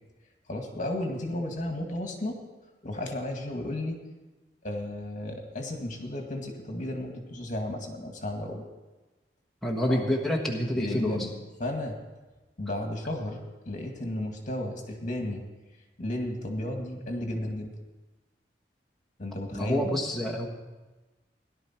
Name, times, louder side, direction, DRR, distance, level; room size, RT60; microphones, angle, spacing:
voice 1, 0.5-2.4 2.8-4.0 4.6-8.7 9.9-10.0 10.7-11.3 11.6-12.0 12.6-15.4 16.0-17.7 19.2-19.8, left 1 dB, 45° left, 3 dB, 2.1 m, -33 dB
voice 2, 9.6-11.3 19.5-20.5, equal, ahead, -2 dB, 1.4 m, -27 dB
17.5 x 11.5 x 4.5 m, 1.2 s
head